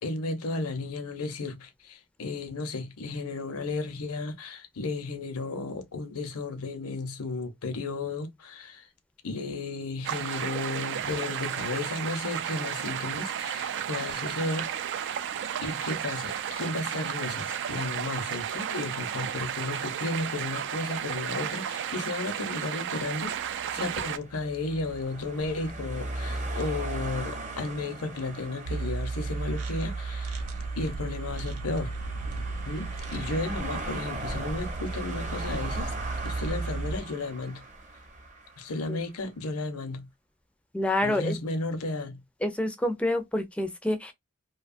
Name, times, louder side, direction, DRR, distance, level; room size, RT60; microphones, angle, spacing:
voice 1, 0.0-8.9 9.2-14.7 15.6-30.4 30.8-31.9 32.7-35.9 36.2-37.6 38.6-40.1 41.0-42.2, left 3 dB, 75° left, 0.7 m, -34 dB
sound 1, 10.0-24.2, right 9 dB, 55° right, 0.3 m, -33 dB
sound 2, 23.5-38.9, right 2 dB, 35° right, 0.8 m, -39 dB
sound 3, 28.6-37.0, right 3 dB, 85° right, 0.7 m, -34 dB
voice 2, 40.7-41.4 42.4-44.1, left 1 dB, 5° left, 0.4 m, -27 dB
2.7 x 2.3 x 2.4 m
head